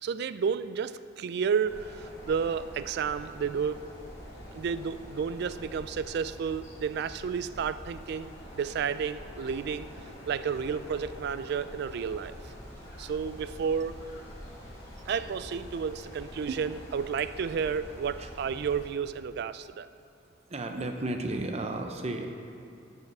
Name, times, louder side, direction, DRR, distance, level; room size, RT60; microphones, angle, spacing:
voice 1, 0.0-3.9 4.5-9.9 10.3-12.3 13.0-14.0 15.1-19.9, right 6 dB, 55° right, 14 dB, 0.3 m, -31 dB
sound 1, 1.6-18.9, equal, 15° left, 2.4 m, -46 dB
voice 2, 20.5-22.3, right 2 dB, 30° right, 5 dB, 0.7 m, -33 dB
8.9 x 5.6 x 6.7 m, 2.7 s
head